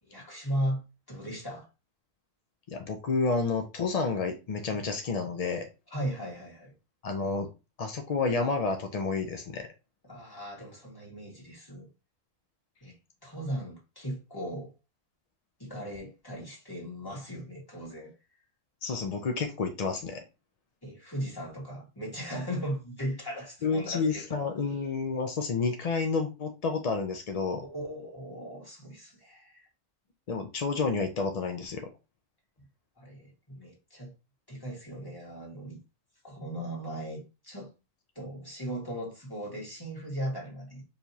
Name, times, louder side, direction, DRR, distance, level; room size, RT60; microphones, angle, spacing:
voice 1, 0.0-0.8 1.1-1.7 5.9-6.7 10.1-11.9 12.8-13.0 13.2-14.7 15.6-18.1 20.8-24.3 27.6-29.7 33.0-34.1 34.5-35.8 36.2-37.7 38.1-40.8, equal, 15° left, 1.6 m, -37 dB
voice 2, 2.7-5.7 7.0-7.5 7.8-9.7 18.8-20.2 23.6-27.7 30.3-31.9, left 4 dB, 70° left, 0.3 m, -30 dB
4.6 x 3.2 x 2.7 m
omnidirectional pair, 1.4 m